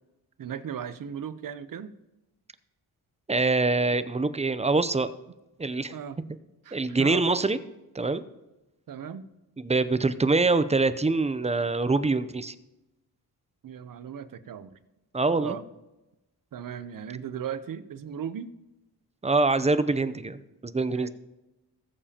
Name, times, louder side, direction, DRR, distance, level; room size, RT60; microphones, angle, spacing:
voice 1, 0.4-1.9 5.9-6.2 6.6-7.2 8.9-9.3 13.6-14.8 15.4-15.6 16.5-18.5 20.9-21.1, right 8 dB, 55° right, 13 dB, 0.8 m, -37 dB
voice 2, 3.3-5.1 5.6-5.9 6.7-7.6 7.9-8.2 9.6-12.5 15.1-15.6 19.2-21.1, right 3 dB, 15° right, 12 dB, 0.6 m, -24 dB
20.0 x 7.0 x 2.9 m, 1.0 s
cardioid pair, 85°, 39 cm